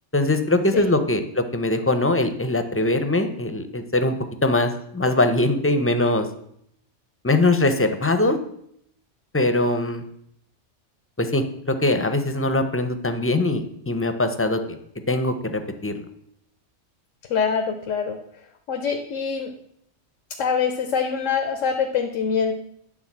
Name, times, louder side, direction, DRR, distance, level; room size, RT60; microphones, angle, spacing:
voice 1, 0.1-6.3 7.2-8.4 9.3-10.0 11.2-14.8 15.1-16.0, left 2 dB, 15° left, 8 dB, 0.5 m, -22 dB
voice 2, 17.3-18.2 18.7-19.5 20.4-22.5, left 6 dB, 85° left, 5 dB, 1.1 m, -24 dB
9.5 x 4.0 x 7.3 m, 0.72 s
omnidirectional pair, 1.3 m